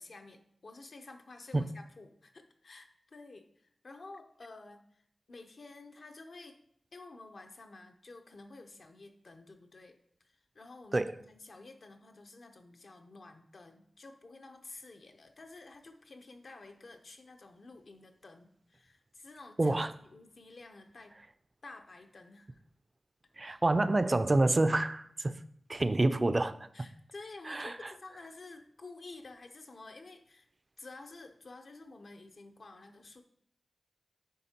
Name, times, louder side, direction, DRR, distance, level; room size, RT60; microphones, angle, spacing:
voice 1, 0.0-5.0 5.3-6.6 6.9-10.0 10.2-21.2 21.6-22.6 23.4-23.6 26.7-30.5 30.8-33.2, left 3 dB, 65° left, 6 dB, 0.7 m, -51 dB
voice 2, 19.6-19.9 23.4-25.4 25.7-26.7 27.5-27.8, right 2 dB, 35° right, 12 dB, 0.3 m, -28 dB
9.3 x 3.6 x 2.8 m, 0.71 s
wide cardioid pair, 75°, 0 cm